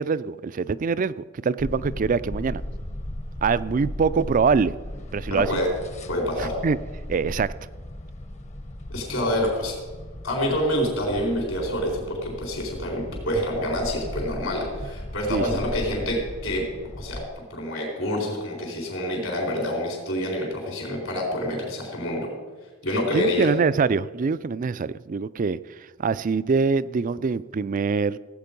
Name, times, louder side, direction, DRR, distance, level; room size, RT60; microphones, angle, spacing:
voice 1, 0.0-2.6 3.4-4.7 5.1-5.6 6.4-6.8 7.1-7.5 15.3-15.6 23.1-25.6 26.0-28.2, right 5 dB, 40° right, 17 dB, 0.3 m, -24 dB
sound 1, 1.6-17.3, left 1 dB, 35° left, 0.9 m, -37 dB
voice 2, 5.3-5.7 6.1-6.5 8.9-9.7 10.2-16.2 16.4-16.6 17.0-17.2 17.5-22.3 22.8-23.5, left 1 dB, 70° left, -1 dB, 4.1 m, -27 dB
16.5 x 8.3 x 5.3 m, 1.4 s
head